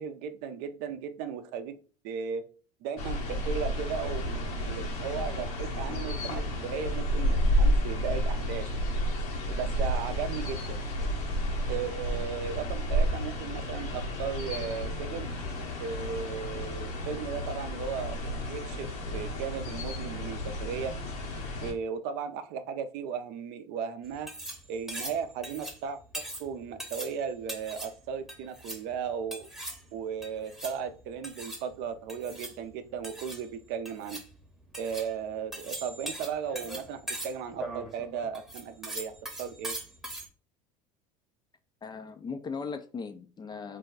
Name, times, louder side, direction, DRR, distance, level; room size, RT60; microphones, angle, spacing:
voice 1, 0.0-1.8 2.0-2.4 2.8-8.6 9.5-10.7 11.7-15.3 15.8-20.9 21.6-24.3 24.7-29.5 29.9-34.2 34.8-39.1 39.4-39.7, right 7 dB, 60° right, 9 dB, 0.5 m, -36 dB
sound 1, 3.0-21.7, equal, 75° left, 1.2 m, -31 dB
sound 2, 24.0-40.3, right 1 dB, ahead, 0.8 m, -41 dB
voice 2, 41.8-43.8, left 5 dB, 25° left, 8 dB, 0.4 m, -38 dB
2.6 x 2.2 x 3.9 m, 0.38 s
hypercardioid pair, 80°, 19 cm